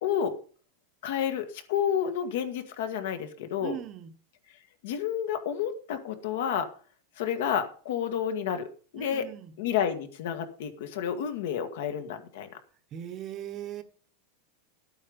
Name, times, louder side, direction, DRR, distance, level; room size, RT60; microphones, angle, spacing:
voice 1, 0.0-0.4 1.0-3.8 4.8-6.7 7.2-8.7 8.9-9.3 9.6-12.6, left 8 dB, 65° left, 1.6 m, -30 dB
voice 2, 3.6-4.1 9.0-9.6 12.9-13.8, right 11 dB, 25° right, 0.9 m, -39 dB
12.0 x 8.8 x 5.2 m
supercardioid pair, 170°, 0 cm